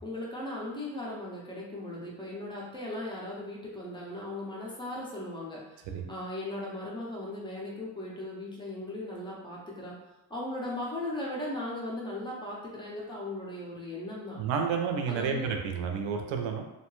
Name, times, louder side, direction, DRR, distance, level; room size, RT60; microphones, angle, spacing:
voice 1, 0.0-10.0 10.3-14.4 15.1-15.6, left 1 dB, 10° left, -4 dB, 0.3 m, -38 dB
voice 2, 14.4-16.6, right 6 dB, 75° right, 3 dB, 0.6 m, -30 dB
2.7 x 2.2 x 3.0 m, 0.98 s
cardioid pair, 175°, 45 cm